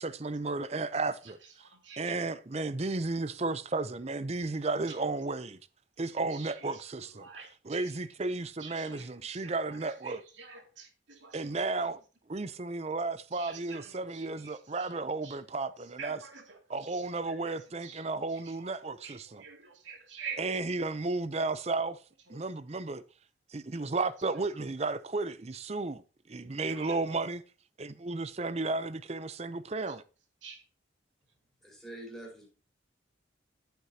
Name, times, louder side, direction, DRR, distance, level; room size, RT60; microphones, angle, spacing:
voice 1, 0.0-1.4 2.0-5.6 6.0-7.3 7.6-10.2 11.3-12.0 12.3-16.2 16.7-19.4 20.4-22.0 22.3-23.0 23.5-26.0 26.3-27.4 27.8-30.0, right 3 dB, 35° right, 0.5 m, -33 dB
voice 2, 1.6-2.2 6.3-6.8 7.1-7.9 8.6-11.6 13.3-15.0 15.2-15.6 16.0-20.4 22.3-22.5 23.7-23.9 26.7-27.2 29.9-30.0 30.4-30.6, right 6 dB, 75° right, 2.5 m, -48 dB
voice 3, 31.6-32.5, right 1 dB, ahead, 4.7 m, -45 dB
14.0 x 8.1 x 2.8 m
head